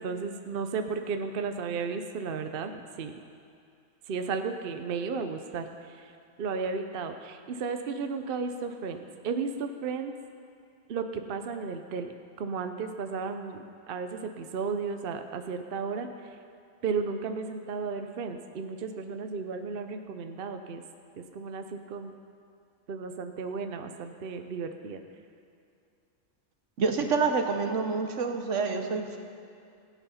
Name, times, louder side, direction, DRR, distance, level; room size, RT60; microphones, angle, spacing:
voice 1, 0.0-2.7 3.0-3.2 4.1-5.7 6.4-10.1 10.9-12.1 12.4-16.1 16.8-20.8 21.3-22.1 22.9-25.0, right 5 dB, 55° right, 7 dB, 0.8 m, -34 dB
voice 2, 26.8-29.2, right 4 dB, 75° right, 5 dB, 1.3 m, -27 dB
17.0 x 8.3 x 5.6 m, 2.5 s
omnidirectional pair, 1.3 m